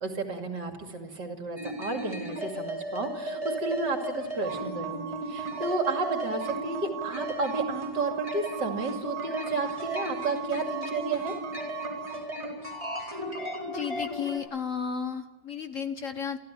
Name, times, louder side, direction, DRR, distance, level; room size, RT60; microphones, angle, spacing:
voice 1, 0.0-11.4, right 3 dB, 65° right, 3 dB, 3.2 m, -32 dB
sound 1, 1.6-14.4, equal, 15° right, 4.8 m, -35 dB
sound 2, 4.4-12.2, right 13 dB, 85° right, 1.8 m, -40 dB
voice 2, 13.7-16.4, left 7 dB, 50° left, 9 dB, 1.2 m, -33 dB
29.0 x 13.5 x 9.0 m, 1.2 s
omnidirectional pair, 2.0 m